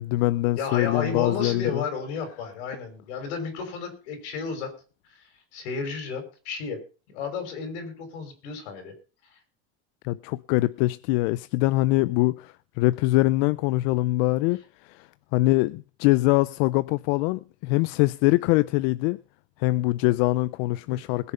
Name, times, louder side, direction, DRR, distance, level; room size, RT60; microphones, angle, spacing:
voice 1, 0.0-1.8 10.0-15.1 15.3-19.2 19.6-21.3, left 19 dB, 70° left, 0.5 m, -23 dB
voice 2, 0.6-4.7 5.5-6.8 7.1-8.9 20.9-21.0, left 5 dB, 90° left, 5.6 m, -32 dB
21.0 x 7.0 x 5.4 m
supercardioid pair, 135°, 32 cm